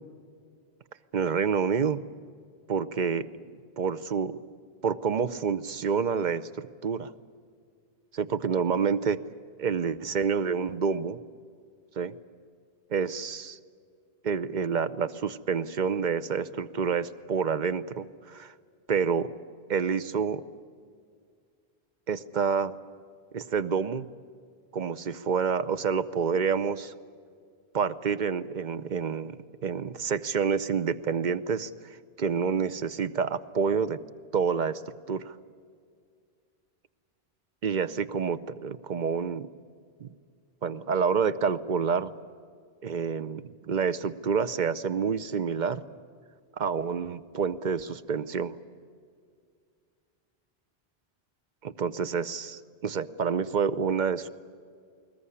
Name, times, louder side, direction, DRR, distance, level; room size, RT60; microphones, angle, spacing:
voice 1, 1.1-2.0 2.7-3.3 3.8-4.4 4.8-7.1 8.1-9.2 9.6-11.2 12.0-12.1 12.9-13.6 14.2-18.5 18.9-19.3 19.7-20.4 22.1-22.7 23.3-24.1 24.7-26.9 27.7-29.4 29.6-31.7 32.2-34.0 34.3-34.8 35.1-35.3 37.6-39.5 40.0-40.1 40.6-42.1 42.8-45.8 46.6-48.5 51.6-54.3, right 6 dB, 50° right, 13 dB, 0.8 m, -28 dB
21.0 x 20.0 x 9.8 m, 2.1 s
omnidirectional pair, 1.1 m